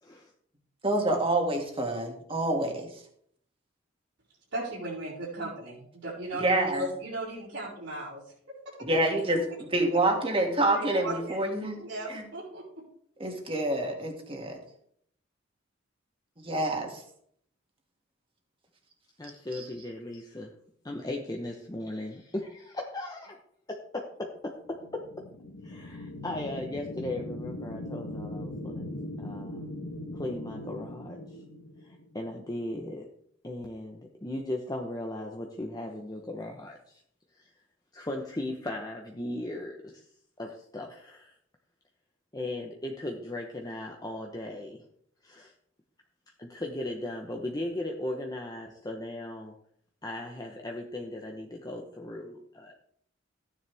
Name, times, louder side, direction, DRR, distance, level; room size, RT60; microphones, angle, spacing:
voice 1, 0.0-0.3 19.2-20.5 20.8-23.3 23.9-24.0 24.7-24.8 25.6-28.9 29.2-29.6 30.1-31.2 31.8-33.1 33.4-37.0 37.3-37.5 37.9-40.1 40.4-41.3 42.3-44.8 45.2-45.5 46.4-49.5 50.0-52.8, left 1 dB, 20° left, 1 dB, 1.0 m, -37 dB
voice 2, 0.8-2.9 6.4-6.8 8.8-11.8 12.1-12.2 13.2-14.6 16.4-17.0 19.5-19.6, right 1 dB, 30° right, 2 dB, 2.4 m, -27 dB
voice 3, 4.5-8.2 8.6-8.9 9.9-10.0 10.6-11.5 11.7-12.8, right 1 dB, 75° right, -10 dB, 4.9 m, -37 dB
sound 1, 24.6-32.3, left 1 dB, 70° left, 1.4 m, -40 dB
15.0 x 9.8 x 3.5 m, 0.66 s
head